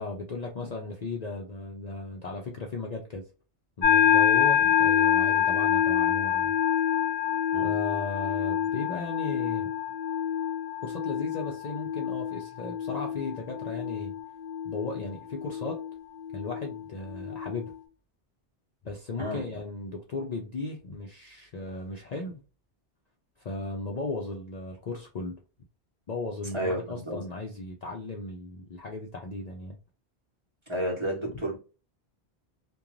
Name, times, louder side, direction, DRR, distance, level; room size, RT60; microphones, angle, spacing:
voice 1, 0.0-3.3 3.8-6.5 7.6-9.7 10.8-14.2 14.6-15.8 16.3-17.7 18.8-22.4 23.4-25.4 26.1-29.8, left 3 dB, 50° left, 0 dB, 0.5 m, -36 dB
sound 1, 3.8-17.7, left 9 dB, 70° left, 0.9 m, -27 dB
voice 2, 26.5-27.2 30.7-31.6, right 1 dB, 30° right, -2 dB, 0.8 m, -31 dB
2.5 x 2.2 x 3.0 m, 0.34 s
omnidirectional pair, 1.1 m